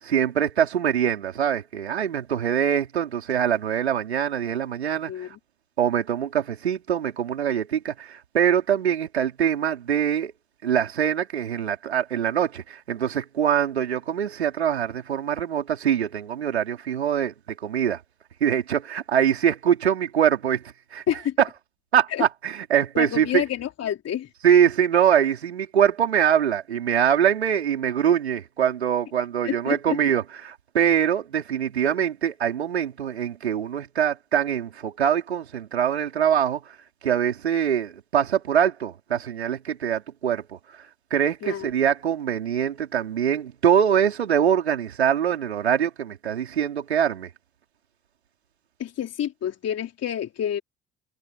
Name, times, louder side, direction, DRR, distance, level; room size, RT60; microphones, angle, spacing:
voice 1, 0.0-5.3 5.8-10.3 10.6-18.0 18.4-20.6 20.9-21.0 21.4-21.5 21.9-23.4 24.4-36.7 37.0-40.6 41.1-47.3, right 9 dB, 85° right, 4.8 m, -23 dB
voice 2, 23.0-24.3 29.4-30.0 41.4-41.7 48.8-50.6, left 10 dB, 50° left, 3.6 m, -28 dB
figure-of-eight pair, 50°, 31 cm